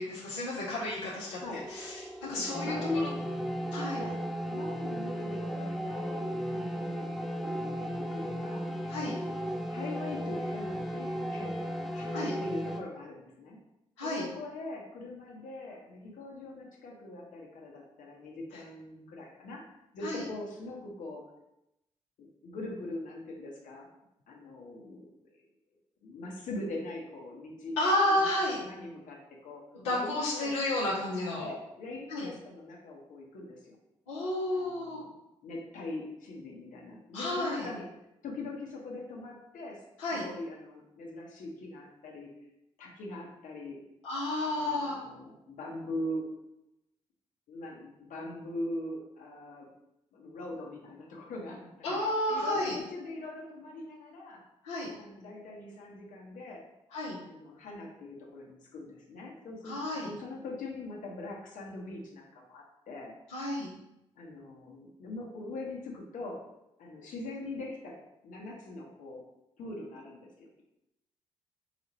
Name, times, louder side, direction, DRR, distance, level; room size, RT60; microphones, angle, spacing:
voice 1, 0.0-1.4 1.7-1.9 2.3-2.7 3.7-4.0 8.9-9.1 12.1-12.3 14.0-14.2 20.0-20.2 27.8-28.6 29.7-31.4 32.1-32.3 34.1-35.0 37.1-37.7 40.0-40.2 44.0-45.0 51.8-52.8 54.6-54.9 56.9-57.2 59.6-60.1 63.3-63.7, left 1 dB, 85° left, -8 dB, 0.7 m, -31 dB
voice 2, 1.3-1.7 2.2-3.1 3.9-4.2 4.5-7.8 8.1-8.7 9.1-11.6 11.9-13.6 14.0-19.6 19.9-21.3 22.2-23.9 24.3-25.4 26.0-27.8 28.1-30.9 31.4-33.8 34.5-37.9 38.2-39.8 40.1-42.3 42.8-43.8 44.4-46.3 47.5-49.7 50.1-52.0 52.3-54.4 55.0-56.7 57.2-63.1 64.2-66.4 66.8-68.0 68.2-69.2 69.6-70.6, left 2 dB, 60° left, -2 dB, 1.0 m, -42 dB
sound 1, 1.4-12.8, equal, ahead, 0.6 m, -35 dB
4.9 x 2.4 x 3.1 m, 0.88 s
hypercardioid pair, 40°, 15 cm